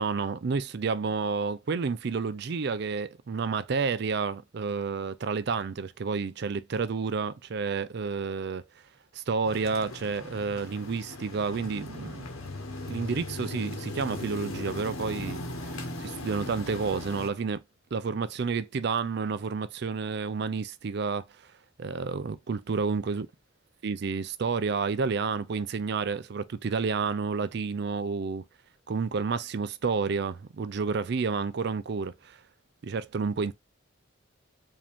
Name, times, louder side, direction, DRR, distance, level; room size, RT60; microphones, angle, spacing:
voice 1, 0.0-8.6 9.1-12.3 12.9-17.6 17.9-21.5 21.8-23.3 23.8-28.4 28.9-32.4 32.8-33.5, right 5 dB, 50° right, 0.4 m, -30 dB
sound 1, 9.4-17.3, left 2 dB, 90° left, 1.1 m, -38 dB
5.0 x 2.8 x 3.4 m
head